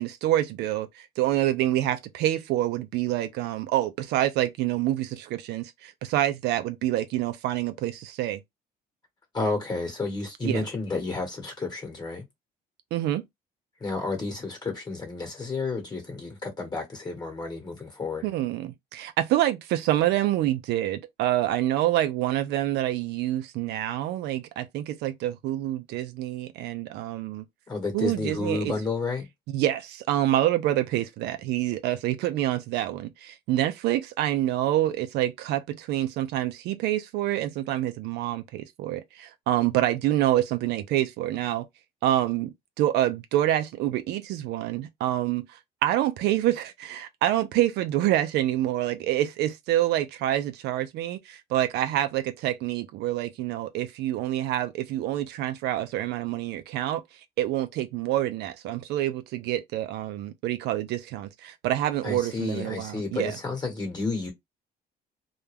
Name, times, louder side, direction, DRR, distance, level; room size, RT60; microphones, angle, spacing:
voice 1, 0.0-8.4 10.4-10.6 12.9-13.2 18.2-27.5 27.9-28.7 29.5-41.7 42.0-57.0 57.4-63.4, right 13 dB, 80° right, 0.4 m, -27 dB
voice 2, 9.3-12.2 13.8-18.3 27.7-29.3 62.0-64.3, left 3 dB, 25° left, 1.1 m, -31 dB
2.3 x 2.1 x 3.2 m
cardioid pair, 110°, 17 cm